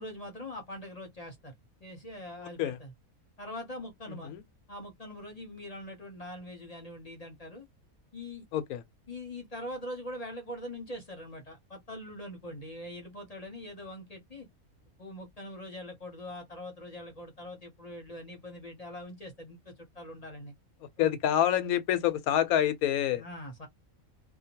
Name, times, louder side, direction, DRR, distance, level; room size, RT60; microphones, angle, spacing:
voice 1, 0.0-1.5 1.8-2.9 3.4-4.3 4.7-7.7 8.1-8.4 9.1-14.5 15.0-20.5 21.0-21.2 23.1-23.7, left 1 dB, 35° left, 0.7 m, -43 dB
voice 2, 21.0-23.2, left 11 dB, 85° left, 1.1 m, -27 dB
2.8 x 2.2 x 2.8 m
omnidirectional pair, 1.5 m